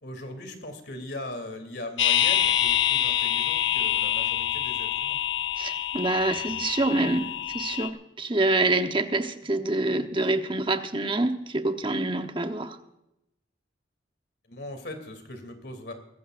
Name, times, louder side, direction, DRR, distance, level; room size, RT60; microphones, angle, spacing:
voice 1, 0.0-5.2 14.5-15.9, left 1 dB, 60° left, 6 dB, 3.0 m, -39 dB
sound 1, 2.0-7.9, left 11 dB, 90° left, 1.1 m, -26 dB
voice 2, 5.6-12.8, right 2 dB, 25° right, 7 dB, 1.0 m, -26 dB
23.0 x 14.5 x 2.6 m, 0.86 s
head